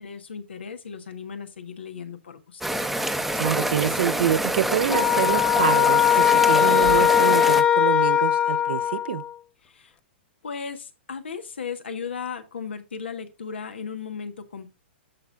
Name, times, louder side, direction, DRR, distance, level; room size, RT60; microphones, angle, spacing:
voice 1, 0.0-2.6 9.6-9.9 10.4-14.7, left 6 dB, 80° left, 1.3 m, -36 dB
sound 1, 2.6-7.6, right 1 dB, ahead, 0.8 m, -27 dB
voice 2, 3.3-9.2, right 10 dB, 65° right, 0.7 m, -26 dB
sound 2, 4.9-9.3, left 10 dB, 15° left, 0.3 m, -20 dB
13.0 x 5.5 x 2.4 m
hypercardioid pair, 120°, 6 cm